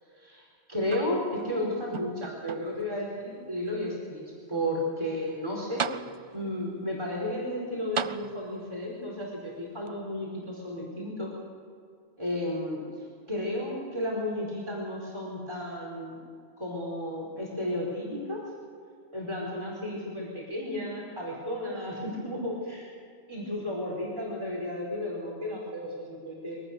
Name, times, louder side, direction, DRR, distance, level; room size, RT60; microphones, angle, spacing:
voice 1, 0.2-4.2 4.5-5.8 6.3-11.3 12.2-12.8 13.3-16.2 16.6-18.4 19.1-22.9 23.3-26.6, left 1 dB, 25° right, -3 dB, 4.7 m, -33 dB
sound 1, 0.9-1.5 1.9-2.9 3.6-3.7 5.3-5.4 5.8-6.6 7.9-8.8 9.9-10.0, right 6 dB, 45° right, 0.4 m, -36 dB
23.5 x 18.5 x 6.7 m, 2.2 s
omnidirectional pair, 1.2 m